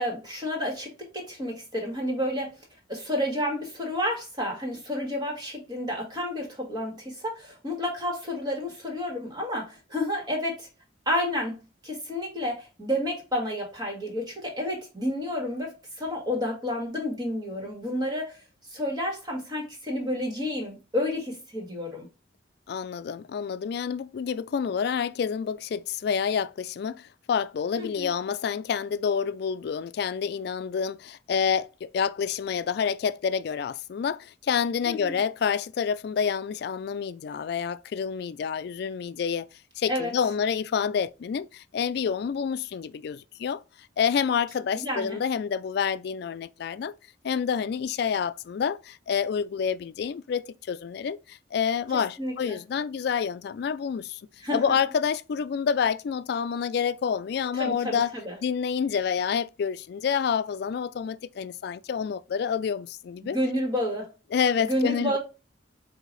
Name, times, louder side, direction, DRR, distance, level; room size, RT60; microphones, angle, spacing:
voice 1, 0.0-2.6 2.9-10.7 11.0-11.6 11.8-18.4 18.7-22.1 27.8-28.1 34.8-35.2 39.9-40.1 44.7-45.2 52.2-52.6 54.4-54.6 57.5-58.3 63.2-64.1 64.6-65.2, left 1 dB, 25° right, 1.7 m, -30 dB
voice 2, 22.7-39.5 39.8-43.6 44.0-46.9 47.2-54.2 54.5-58.1 58.4-63.4 64.3-65.2, left 7 dB, 60° left, 0.3 m, -28 dB
4.8 x 2.7 x 3.9 m
head